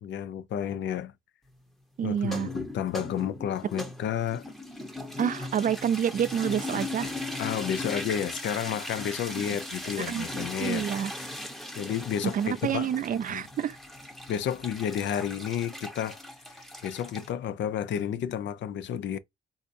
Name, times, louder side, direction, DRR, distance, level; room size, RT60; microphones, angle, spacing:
voice 1, 0.0-1.1 2.0-4.5 7.4-10.8 11.7-12.4 12.6-12.9 13.3-13.4 14.3-16.2 16.5-19.2, left 9 dB, 65° left, 0.5 m, -31 dB
voice 2, 2.0-2.5 5.2-7.1 9.4-9.5 10.0-11.1 12.3-13.8, right 9 dB, 45° right, 0.4 m, -28 dB
sound 1, 2.2-17.3, left 1 dB, ahead, 0.8 m, -38 dB
3.4 x 2.7 x 2.5 m
cardioid pair, 90°, 20 cm